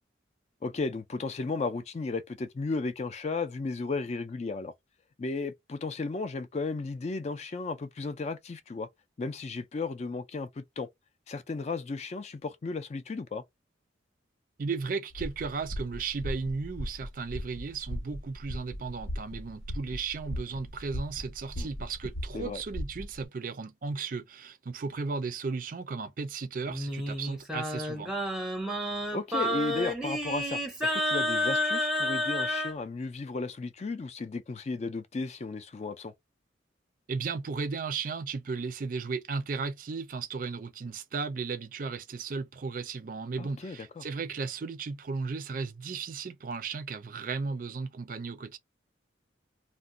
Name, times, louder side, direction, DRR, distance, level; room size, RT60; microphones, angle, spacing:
voice 1, 0.6-4.7 5.2-8.9 9.2-10.9 11.3-13.4 21.6-21.7 22.3-22.6 29.1-36.1 43.4-44.0, left 3 dB, 35° left, 0.3 m, -34 dB
voice 2, 14.6-28.1 37.1-48.6, right 4 dB, 45° right, 0.4 m, -35 dB
sound 1, 15.1-23.3, equal, 85° left, 0.8 m, -38 dB
Singing, 26.7-32.7, left 1 dB, 5° right, 0.6 m, -30 dB
2.4 x 2.1 x 3.7 m
head